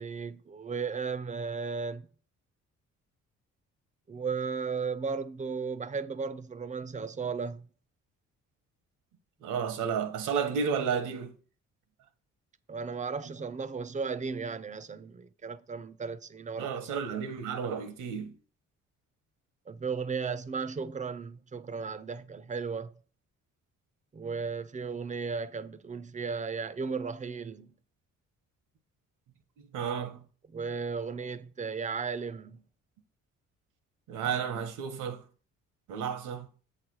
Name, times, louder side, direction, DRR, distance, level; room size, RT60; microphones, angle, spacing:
voice 1, 0.0-2.1 4.1-7.7 12.7-16.9 19.7-22.9 24.1-27.7 30.5-32.6, right 5 dB, 25° right, 0.5 m, -35 dB
voice 2, 9.4-11.3 16.6-18.3 29.7-30.2 34.1-35.2 35.9-36.5, right 7 dB, 80° right, 1.2 m, -32 dB
7.6 x 3.3 x 6.2 m
cardioid pair, 90°, 30 cm